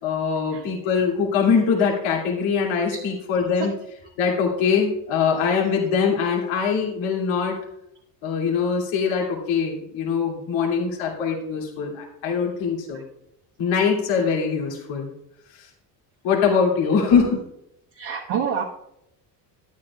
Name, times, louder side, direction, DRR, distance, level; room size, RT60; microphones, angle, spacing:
voice 1, 0.0-3.7 4.2-7.6 8.2-13.0 13.6-15.1 15.5-15.7 16.2-17.4, left 6 dB, 75° left, -2 dB, 2.6 m, -22 dB
voice 2, 17.9-18.6, right 7 dB, 60° right, -1 dB, 1.3 m, -27 dB
12.5 x 9.7 x 2.3 m, 0.78 s
supercardioid pair, 70°, 48 cm